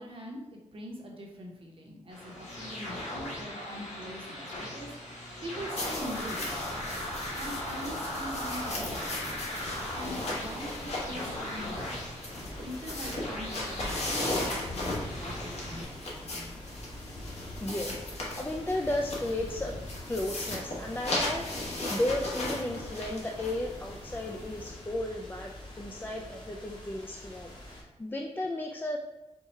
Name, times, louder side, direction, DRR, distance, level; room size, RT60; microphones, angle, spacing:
voice 1, 0.0-9.2 9.6-16.6, equal, 50° right, -1 dB, 0.9 m, -43 dB
sound 1, 2.1-15.8, left 1 dB, 80° left, 1.2 m, -39 dB
sound 2, 5.8-24.7, left 1 dB, 60° left, 1.3 m, -37 dB
sound 3, 12.4-27.8, left 1 dB, 40° left, 1.2 m, -45 dB
voice 2, 17.3-19.8 20.1-29.0, left 1 dB, 15° left, 0 dB, 0.3 m, -34 dB
4.6 x 2.3 x 4.2 m, 0.98 s
wide cardioid pair, 105°, 12 cm